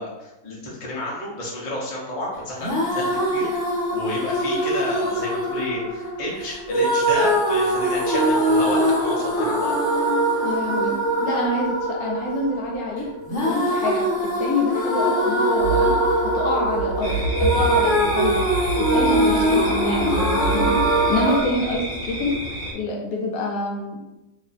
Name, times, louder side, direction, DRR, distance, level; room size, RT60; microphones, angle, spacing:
voice 1, 0.0-9.7, left 1 dB, 30° left, -5 dB, 0.7 m, -31 dB
sound 1, 2.6-21.4, right 1 dB, 55° left, 1.2 m, -22 dB
voice 2, 10.4-14.0 14.4-15.9 16.3-18.4 18.9-22.3 22.7-24.0, left 2 dB, 75° left, -1 dB, 1.0 m, -27 dB
sound 2, 15.6-21.2, right 3 dB, 70° right, 0.9 m, -29 dB
sound 3, 17.0-22.7, equal, 55° right, 0.4 m, -31 dB
2.7 x 2.6 x 3.9 m, 0.98 s
omnidirectional pair, 1.7 m